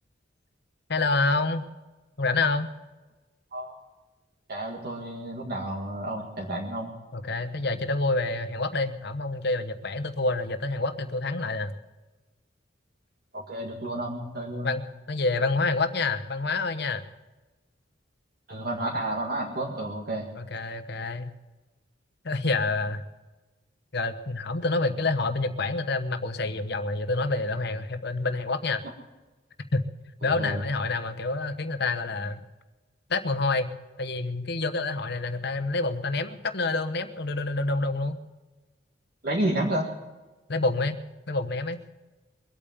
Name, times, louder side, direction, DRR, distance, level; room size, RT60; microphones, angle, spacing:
voice 1, 0.9-1.6 2.2-2.7 7.1-11.7 14.6-14.8 15.1-17.0 20.3-21.3 22.2-23.0 23.9-28.8 29.7-29.8 30.2-32.4 33.1-33.7 34.0-38.2 40.5-41.0 41.3-41.8, left 3 dB, 60° left, 10 dB, 1.1 m, -27 dB
voice 2, 4.5-6.9 13.3-14.7 18.5-20.3 30.2-30.6 39.2-39.9, right 1 dB, 55° right, -2 dB, 2.0 m, -31 dB
22.5 x 8.7 x 7.3 m, 1.2 s
head